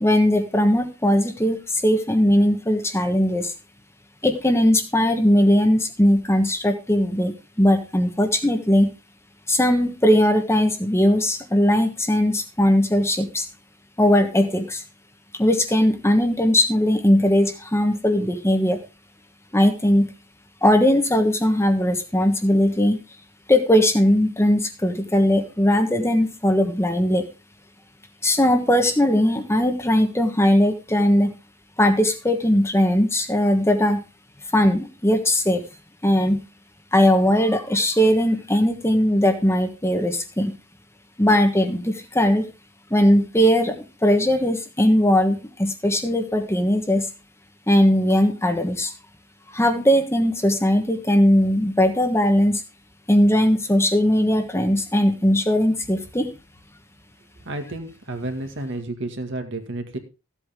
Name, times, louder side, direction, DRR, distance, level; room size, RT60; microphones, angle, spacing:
voice 1, 0.0-3.5 4.2-8.9 9.5-13.5 14.0-14.8 15.3-18.8 19.5-20.1 20.6-23.0 23.5-27.2 28.2-31.3 31.8-34.0 34.5-35.6 36.0-36.4 36.9-40.6 41.2-42.4 42.9-43.8 44.0-47.1 47.7-48.9 49.5-52.6 53.1-56.3, left 1 dB, 15° left, 6 dB, 1.3 m, -19 dB
voice 2, 57.5-60.0, right 2 dB, 60° right, 5 dB, 2.0 m, -31 dB
14.5 x 8.3 x 3.6 m, 0.30 s
head